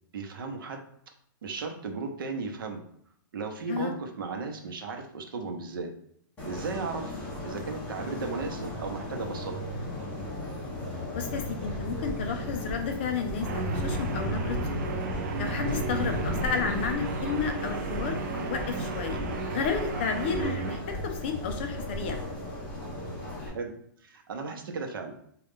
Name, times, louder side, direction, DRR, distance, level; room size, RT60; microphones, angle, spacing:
voice 1, 0.1-0.8 1.4-2.8 3.3-5.9 6.4-9.5 15.7-15.9 23.4-23.7 24.0-25.2, right 4 dB, 75° right, 3 dB, 0.8 m, -35 dB
sound 1, 6.4-23.5, left 1 dB, 10° left, 1.1 m, -35 dB
voice 2, 11.1-14.6 14.9-15.0 15.4-18.2 18.5-19.2 19.5-22.2, left 6 dB, 30° left, 5 dB, 0.4 m, -32 dB
sound 2, 11.7-22.6, left 1 dB, 10° right, 1.2 m, -42 dB
Guitar, 13.4-20.8, right 7 dB, 50° right, 0.4 m, -35 dB
3.7 x 2.3 x 3.6 m, 0.68 s
hypercardioid pair, 175°, 11 cm